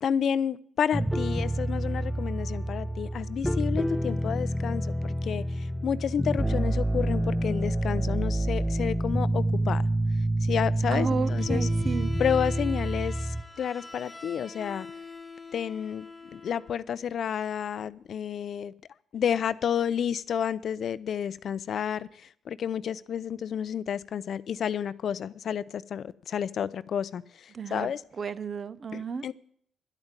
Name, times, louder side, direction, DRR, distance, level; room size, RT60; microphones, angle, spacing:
voice 1, 0.0-9.8 10.4-11.7 12.2-14.9 15.5-18.7 19.1-28.0 28.9-29.3, left 8 dB, 60° left, 0.5 m, -30 dB
sound 1, 0.9-13.4, right 1 dB, ahead, 0.7 m, -28 dB
voice 2, 10.9-12.1 27.5-27.9 28.2-29.3, right 5 dB, 45° right, 0.6 m, -32 dB
Bowed string instrument, 11.2-16.8, left 4 dB, 25° left, 1.1 m, -42 dB
11.0 x 9.0 x 7.3 m
cardioid pair, 90°, 0 cm